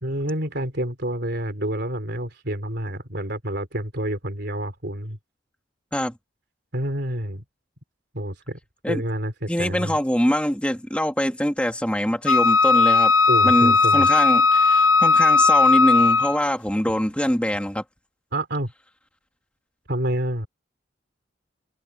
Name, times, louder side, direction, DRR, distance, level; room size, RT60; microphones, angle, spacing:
voice 1, 0.0-5.2 6.7-7.4 8.1-8.6 8.9-10.0 13.3-14.1 18.3-18.7 19.9-20.5, right 1 dB, 55° right, 3.8 m, -28 dB
voice 2, 9.5-13.1 13.4-17.8, equal, 5° left, 2.2 m, -23 dB
Wind instrument woodwind instrument, 12.3-16.5, left 4 dB, 90° left, 0.8 m, -17 dB
head